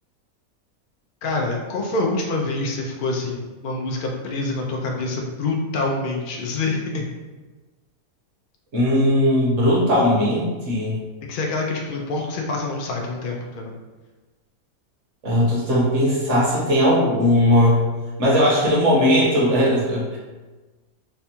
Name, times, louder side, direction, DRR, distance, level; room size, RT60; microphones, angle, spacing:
voice 1, 1.2-7.0 11.3-13.7, left 2 dB, 75° left, 0 dB, 0.4 m, -26 dB
voice 2, 8.7-11.0 15.2-17.9 18.2-20.2, equal, 55° right, -5 dB, 1.3 m, -18 dB
3.4 x 2.3 x 4.2 m, 1.3 s
omnidirectional pair, 1.5 m